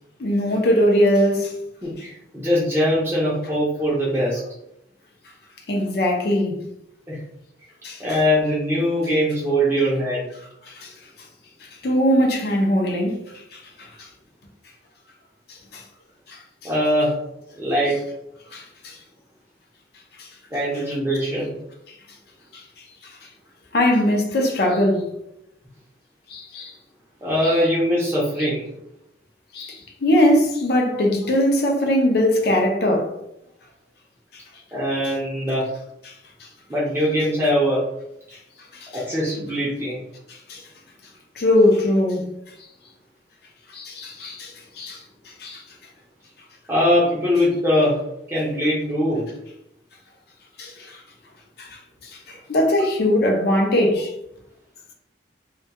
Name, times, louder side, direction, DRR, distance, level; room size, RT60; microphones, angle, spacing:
voice 1, 0.2-1.6 5.7-6.6 7.8-8.0 10.7-10.9 11.8-13.9 15.7-15.8 16.3-16.4 18.5-19.0 20.2-20.3 22.5-22.6 23.7-25.1 26.3-26.7 27.4-27.5 29.5-33.2 36.4-36.5 38.7-39.0 40.3-40.6 41.4-42.2 43.7-45.0 45.4-45.6 50.6-51.0 51.6-54.1, left 1 dB, 55° left, 0.5 m, -21 dB
voice 2, 1.8-4.4 7.1-7.2 8.0-10.3 16.6-17.2 17.5-18.0 20.5-21.6 27.2-28.7 34.7-35.7 36.7-37.8 38.9-40.0 46.7-48.0 48.3-49.3, equal, 15° right, 0.5 m, -21 dB
2.2 x 2.2 x 2.8 m
head